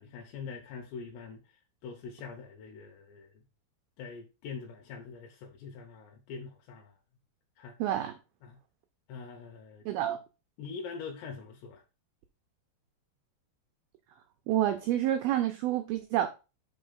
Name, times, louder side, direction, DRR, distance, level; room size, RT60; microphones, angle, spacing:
voice 1, 0.0-3.3 4.0-6.9 7.6-7.8 8.4-8.6 9.1-9.9 10.6-11.8, left 5 dB, 80° left, 2.9 m, -44 dB
voice 2, 7.8-8.1 9.9-10.2 14.5-16.3, right 12 dB, 85° right, 2.1 m, -28 dB
5.7 x 4.5 x 5.4 m
omnidirectional pair, 5.1 m